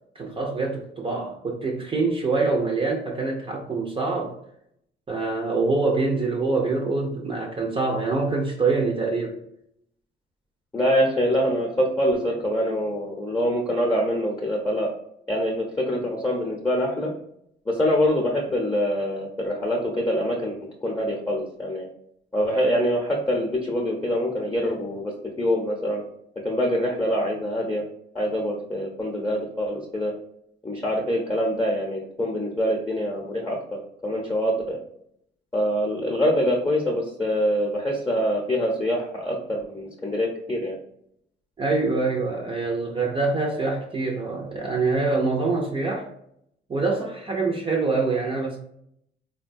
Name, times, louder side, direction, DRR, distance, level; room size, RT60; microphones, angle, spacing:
voice 1, 0.1-4.3 5.1-9.4 41.6-46.1 46.7-48.6, right 3 dB, 25° right, -1 dB, 0.6 m, -25 dB
voice 2, 10.7-14.9 15.3-17.1 17.7-21.9 22.3-26.0 26.4-27.8 28.1-30.1 30.6-34.8 35.5-40.8, equal, 15° left, -2 dB, 0.8 m, -25 dB
3.6 x 2.2 x 2.6 m, 0.73 s
cardioid pair, 90°, 20 cm